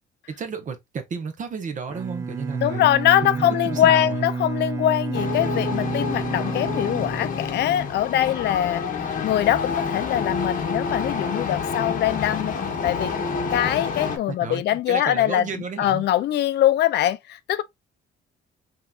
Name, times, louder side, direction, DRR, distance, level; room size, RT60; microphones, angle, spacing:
voice 1, 0.3-2.9 3.2-4.3 14.3-16.1, right 5 dB, 40° right, 0.9 m, -32 dB
Bowed string instrument, 1.9-7.9, right 4 dB, 15° right, 0.4 m, -30 dB
voice 2, 2.6-12.5 12.8-13.2 13.5-15.5 15.8-17.6, left 12 dB, 60° left, 0.4 m, -22 dB
sound 1, 5.1-14.2, left 5 dB, 40° left, 1.0 m, -28 dB
5.6 x 2.9 x 2.3 m
cardioid pair, 155°, 20 cm